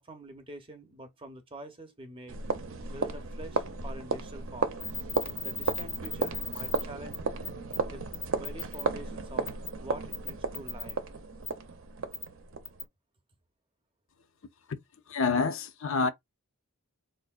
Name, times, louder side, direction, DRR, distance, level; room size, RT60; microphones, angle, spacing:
voice 1, 0.0-2.4 2.9-4.7 5.4-7.2 7.8-11.0, right 1 dB, 25° right, 0.7 m, -46 dB
sound 1, 2.3-12.9, right 4 dB, 60° right, 0.6 m, -34 dB
sound 2, 4.8-6.8 7.1-7.2 7.4-7.8 8.1-8.8 9.5-9.7 10.1-10.9 11.4-11.5 12.1-12.3 12.7-12.8, left 5 dB, 10° left, 0.6 m, -36 dB
voice 2, 15.1-16.1, left 4 dB, 65° left, 0.6 m, -27 dB
4.2 x 2.6 x 2.4 m
head